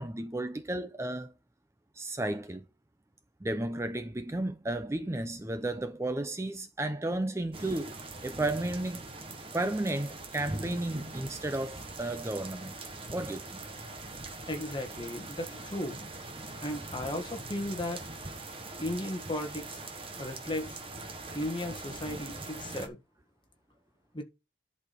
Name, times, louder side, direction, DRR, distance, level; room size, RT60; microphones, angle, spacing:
voice 1, 0.0-1.3 2.0-2.6 3.4-9.0 9.5-12.7 13.1-13.6, right 1 dB, 15° right, 0.5 m, -33 dB
sound 1, 7.5-22.9, right 2 dB, 30° right, 1.2 m, -42 dB
voice 2, 14.5-16.1 16.6-18.0 18.8-19.8 20.2-20.8 21.3-23.0 24.1-24.2, left 1 dB, 25° left, 1.5 m, -35 dB
11.0 x 4.3 x 5.1 m
head